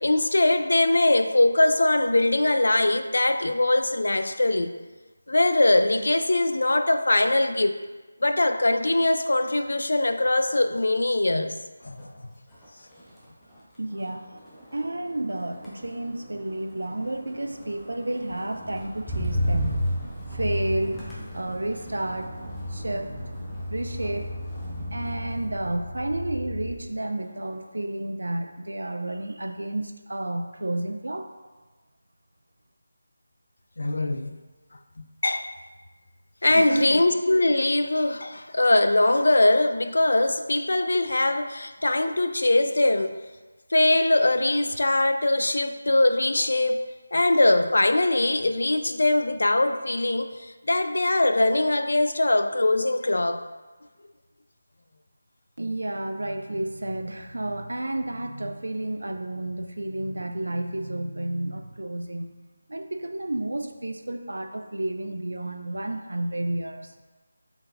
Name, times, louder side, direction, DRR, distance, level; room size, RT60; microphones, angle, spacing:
voice 1, 0.0-4.7 5.3-7.8 8.2-11.5 11.8-12.0 33.8-34.4 35.0-35.5 36.4-43.2 43.7-46.8 47.1-53.4, left 2 dB, 70° left, 8 dB, 0.3 m, -22 dB
Motor vehicle (road), 11.8-12.2 12.5-27.0 27.3-27.8, equal, 10° left, 0.6 m, -34 dB
voice 2, 13.8-14.3 14.7-19.8 20.3-21.0 21.3-24.3 24.9-31.3 36.5-37.0 55.6-62.4 62.7-66.9, right 1 dB, 80° right, 6 dB, 0.4 m, -31 dB
4.3 x 3.9 x 2.5 m, 1.3 s
figure-of-eight pair, 165°, 0 cm